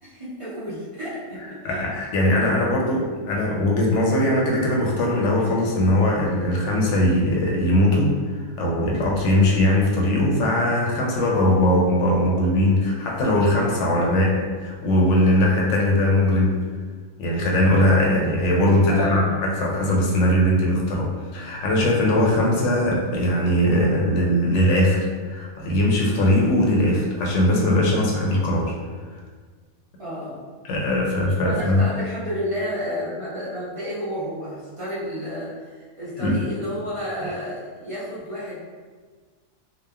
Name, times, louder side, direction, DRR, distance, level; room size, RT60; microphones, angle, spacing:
voice 1, 0.0-1.8 18.9-19.4 30.0-30.4 31.4-35.5 35.8-38.6, equal, 60° right, -10 dB, 0.3 m, -31 dB
voice 2, 1.6-8.1 8.6-16.5 17.2-28.7 30.6-31.8 36.2-36.5, left 1 dB, 65° left, -3 dB, 0.8 m, -20 dB
3.0 x 2.1 x 2.2 m, 1.5 s
omnidirectional pair, 1.5 m